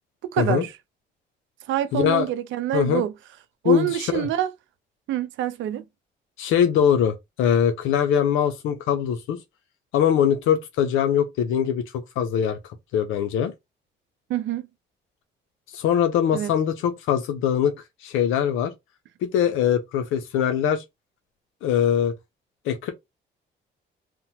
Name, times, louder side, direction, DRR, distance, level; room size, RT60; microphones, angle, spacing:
voice 1, 0.2-0.7 1.7-3.1 3.6-4.5 5.1-5.8 14.3-14.7 16.3-16.5, right 12 dB, 75° right, 0.4 m, -26 dB
voice 2, 1.9-2.3 2.7-3.0 3.6-4.3 6.4-9.4 9.9-12.6 12.9-13.5 15.7-17.7 18.0-18.7 19.3-20.8 21.6-22.1 22.7-22.9, left 8 dB, 90° left, 0.5 m, -22 dB
2.9 x 2.1 x 2.7 m
cardioid pair, 90°, 20 cm